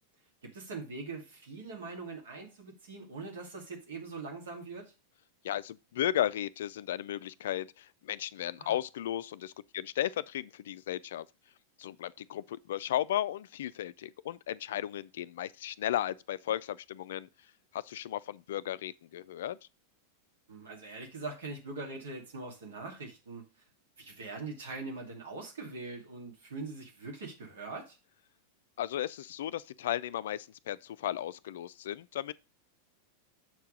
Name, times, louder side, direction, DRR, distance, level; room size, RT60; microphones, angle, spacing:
voice 1, 0.4-4.9 8.6-8.7 20.5-23.4 24.0-28.0, right 3 dB, 60° right, 2.5 m, -42 dB
voice 2, 5.4-11.3 11.8-17.3 17.7-19.6 28.8-32.3, left 12 dB, 60° left, 0.4 m, -35 dB
7.3 x 4.6 x 5.2 m
figure-of-eight pair, 90°, 0 cm